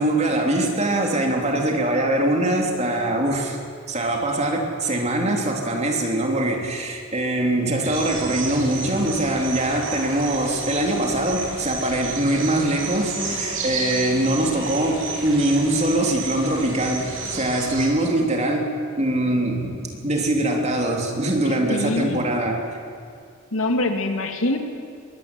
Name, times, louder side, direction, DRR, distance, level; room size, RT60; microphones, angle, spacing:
voice 1, 0.0-3.6 3.9-18.7 19.0-22.6, right 1 dB, 35° right, 1 dB, 3.4 m, -22 dB
sound 1, 7.8-17.9, right 3 dB, 75° right, 7.0 m, -32 dB
voice 2, 21.7-22.2 23.5-24.6, left 2 dB, 90° left, 5 dB, 2.5 m, -23 dB
22.0 x 17.5 x 9.8 m, 2.3 s
head